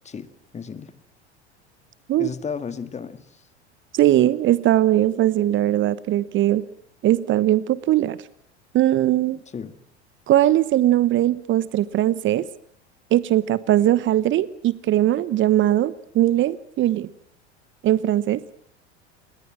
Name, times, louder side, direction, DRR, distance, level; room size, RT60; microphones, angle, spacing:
voice 1, 0.0-0.9 2.2-3.2 9.5-9.7, left 6 dB, 20° left, 12 dB, 2.0 m, -33 dB
voice 2, 3.9-6.6 7.0-8.2 8.7-9.4 10.3-12.5 13.1-17.1 17.8-18.4, right 13 dB, 35° right, 18 dB, 1.1 m, -20 dB
28.5 x 21.5 x 7.6 m, 0.62 s
figure-of-eight pair, 80°, 34 cm